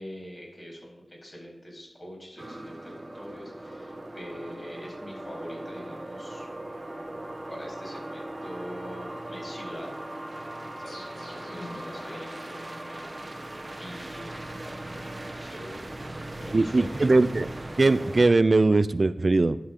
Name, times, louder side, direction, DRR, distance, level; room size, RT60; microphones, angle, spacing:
voice 1, 0.0-6.5 7.5-9.9 10.4-13.3 13.8-17.1, equal, 40° left, -2 dB, 3.8 m, -44 dB
sound 1, 2.4-18.3, right 1 dB, 40° right, 1.1 m, -39 dB
sound 2, 10.9-13.6, left 1 dB, 85° left, 1.8 m, -46 dB
voice 2, 16.5-17.5 17.8-19.6, right 3 dB, 55° right, 13 dB, 0.3 m, -20 dB
11.5 x 6.5 x 3.7 m, 0.95 s
wide cardioid pair, 50°, 0 cm